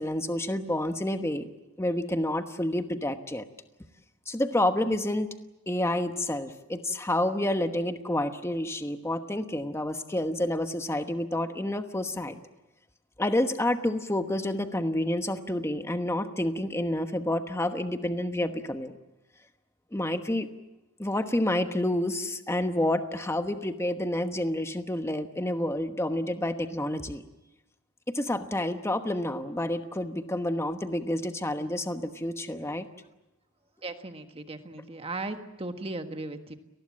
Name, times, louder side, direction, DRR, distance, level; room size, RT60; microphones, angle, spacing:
voice 1, 0.0-1.5 1.8-3.5 4.3-5.3 5.7-12.4 13.2-18.9 19.9-20.5 21.0-27.2 28.1-32.9, left 1 dB, 10° left, 8 dB, 1.1 m, -29 dB
voice 2, 33.8-36.6, right 2 dB, 25° right, 7 dB, 1.5 m, -37 dB
29.5 x 19.5 x 7.5 m, 0.97 s
head